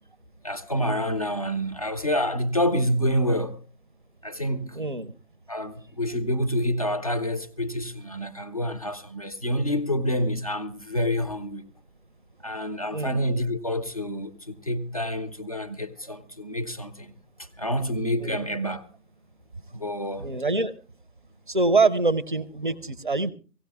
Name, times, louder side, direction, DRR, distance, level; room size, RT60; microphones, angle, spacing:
voice 1, 0.4-3.6 4.2-4.8 5.5-11.7 12.4-17.1 17.4-18.9 19.7-20.3, equal, 25° left, 0.6 m, -28 dB
voice 2, 4.7-5.1 12.4-12.6 12.9-13.3 18.2-18.4 20.2-20.7 21.5-23.3, right 3 dB, 35° right, 0.7 m, -25 dB
18.0 x 16.0 x 3.4 m
figure-of-eight pair, 160°, 47 cm